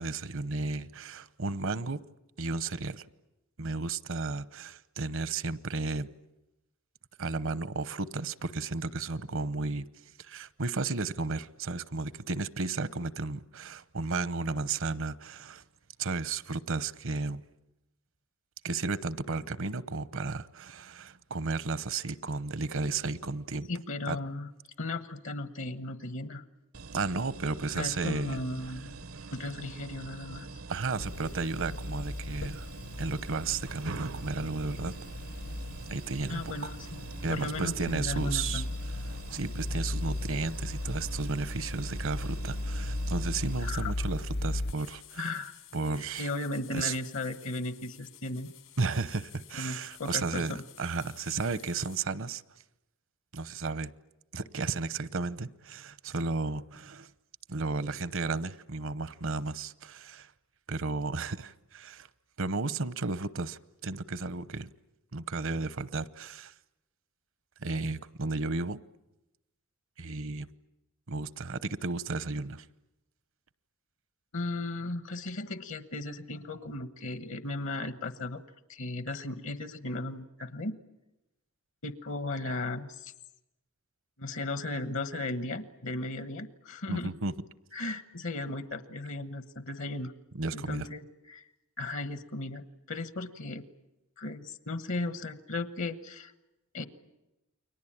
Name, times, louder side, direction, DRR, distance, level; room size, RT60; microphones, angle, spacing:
voice 1, 0.0-2.0 2.4-3.0 3.6-6.1 7.2-9.9 10.2-15.6 16.0-17.4 18.6-23.7 24.1-24.2 26.9-28.4 30.7-32.7 33.0-34.9 35.9-36.7 37.2-38.6 39.0-45.2 45.7-46.3 46.7-47.0 48.8-52.4 53.3-53.9 54.3-57.1 57.5-60.3 60.7-62.1 62.4-64.7 65.1-66.5 67.6-68.8 70.0-70.5 71.1-72.7 86.9-87.3 90.3-90.9, right 3 dB, 65° right, 0.9 m, -33 dB
voice 2, 23.7-24.5 24.8-26.4 27.6-29.0 29.3-30.5 36.3-37.0 37.3-38.7 43.6-43.9 45.2-45.5 46.2-48.5 49.5-50.6 74.3-78.4 78.7-80.7 81.8-83.1 84.2-87.1 87.7-90.1 90.5-91.4 91.8-93.6 94.2-96.3 96.7-96.9, left 2 dB, 65° left, 1.2 m, -36 dB
sound 1, 26.7-43.7, right 3 dB, 85° right, 1.1 m, -45 dB
sound 2, 31.0-44.7, left 1 dB, 50° left, 0.9 m, -37 dB
sound 3, 44.7-52.0, left 13 dB, 90° left, 6.3 m, -53 dB
29.5 x 22.5 x 8.8 m
head